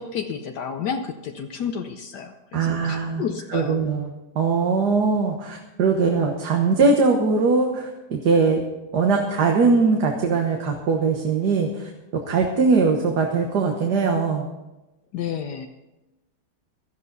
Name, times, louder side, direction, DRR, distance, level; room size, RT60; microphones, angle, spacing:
voice 1, 0.0-3.8 15.1-15.7, left 7 dB, 70° left, 5 dB, 1.4 m, -31 dB
voice 2, 2.5-3.2 3.5-8.6 8.9-14.5, right 4 dB, 70° right, 2 dB, 1.9 m, -21 dB
17.5 x 13.0 x 4.0 m, 1.0 s
omnidirectional pair, 1.9 m